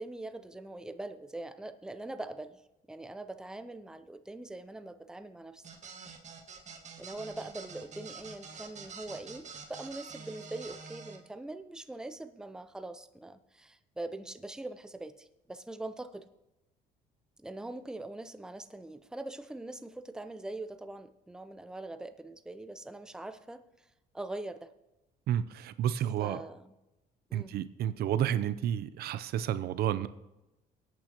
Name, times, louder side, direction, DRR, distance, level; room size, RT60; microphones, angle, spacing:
voice 1, 0.0-2.6 2.9-5.6 7.0-16.3 17.4-23.6 24.1-24.7 26.2-26.7 27.3-27.6, right 2 dB, 5° right, 10 dB, 0.6 m, -42 dB
sound 1, 5.6-11.2, right 5 dB, 45° right, 1.6 m, -47 dB
voice 2, 25.3-26.4 27.3-30.1, right 10 dB, 70° right, 14 dB, 0.6 m, -31 dB
21.5 x 8.8 x 3.0 m, 0.95 s
cardioid pair, 110°, 17 cm